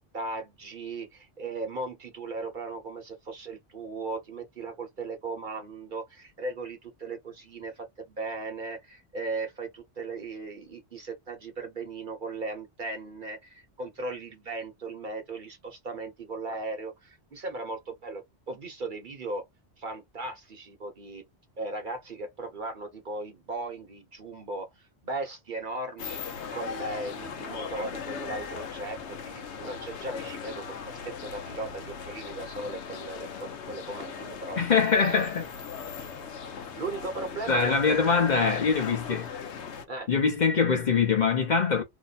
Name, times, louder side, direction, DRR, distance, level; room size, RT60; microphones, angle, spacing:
voice 1, 0.1-19.4 19.8-21.2 21.6-24.7 25.0-26.2 26.5-34.7 36.7-38.3 39.9-40.1, right 2 dB, 50° right, 0.9 m, -37 dB
sound 1, 26.0-39.8, left 6 dB, 85° left, 1.0 m, -38 dB
voice 2, 34.6-35.5 37.5-39.3 40.1-41.8, left 5 dB, 45° left, 0.9 m, -23 dB
2.8 x 2.1 x 4.0 m
omnidirectional pair, 1.1 m